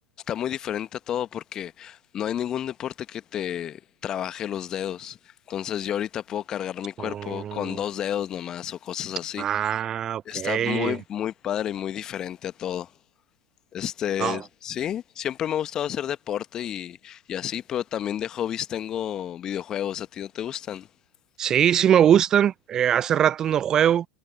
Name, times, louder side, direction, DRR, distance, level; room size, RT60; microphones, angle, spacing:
voice 1, 0.3-9.4 10.2-12.9 13.7-20.9, left 10 dB, 30° left, 1.3 m, -31 dB
voice 2, 7.0-7.8 9.4-11.0 14.2-14.4 21.4-24.1, right 9 dB, 30° right, 0.5 m, -22 dB
figure-of-eight pair, 85°, 2 cm